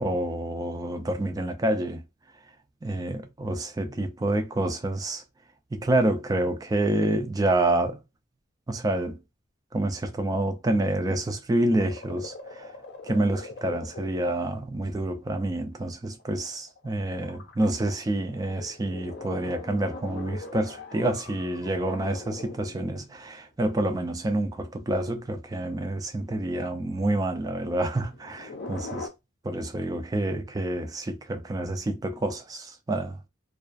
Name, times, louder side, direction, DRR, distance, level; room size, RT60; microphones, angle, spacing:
voice 1, 0.0-2.0 2.8-5.2 5.7-8.0 8.7-9.2 9.7-12.7 13.0-29.1 29.4-33.2, right 1 dB, 20° right, 0.3 m, -28 dB
sound 1, 11.7-14.3 15.1-15.2 15.4-15.6 15.9-23.3 25.0-25.1 26.0-26.3 27.5-29.1, left 3 dB, 55° left, 0.5 m, -42 dB
2.3 x 2.2 x 2.5 m
head